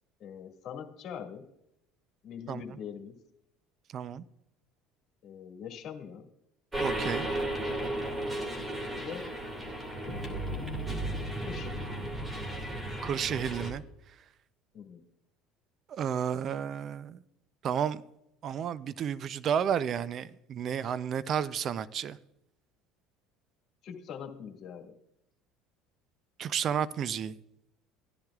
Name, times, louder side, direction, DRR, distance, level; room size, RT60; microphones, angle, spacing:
voice 1, 0.2-1.5 2.2-3.2 5.2-6.3 9.0-9.3 10.0-10.6 11.5-12.0 14.7-15.0 23.8-24.9, left 7 dB, 50° left, 2.0 m, -43 dB
voice 2, 3.9-4.2 6.8-7.3 13.0-13.8 15.9-17.2 17.6-18.0 18.4-22.2 26.4-27.3, right 8 dB, 45° right, 0.5 m, -31 dB
sound 1, 6.7-13.7, right 1 dB, 15° right, 2.2 m, -34 dB
16.0 x 10.5 x 2.4 m
supercardioid pair, 100°, 0 cm